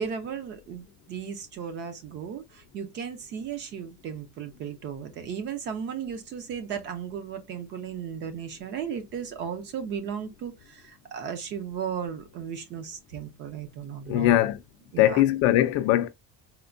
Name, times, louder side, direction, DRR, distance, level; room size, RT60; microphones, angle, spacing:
voice 1, 0.0-14.4 14.9-15.2, right 7 dB, 35° right, 0.5 m, -35 dB
voice 2, 14.1-14.6 15.0-16.1, left 13 dB, 45° left, 0.4 m, -21 dB
4.3 x 2.1 x 2.5 m
cardioid pair, 175°, 34 cm